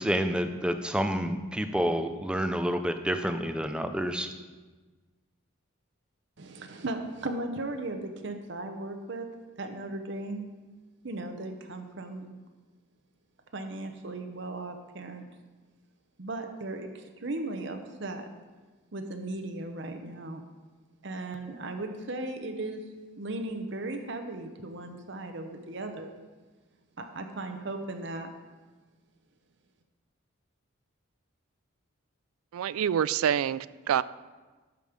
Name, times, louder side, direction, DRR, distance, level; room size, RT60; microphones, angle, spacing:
voice 1, 0.0-4.3, equal, 5° right, 8 dB, 0.5 m, -29 dB
voice 2, 6.4-9.3 9.6-10.5 11.0-12.4 13.5-15.3 16.2-18.3 18.9-20.4 21.0-22.8 23.2-26.1 27.0-28.3, right 2 dB, 55° right, 5 dB, 0.8 m, -37 dB
voice 3, 32.5-34.0, right 9 dB, 85° right, 17 dB, 0.3 m, -27 dB
12.5 x 5.2 x 5.1 m, 1.3 s
head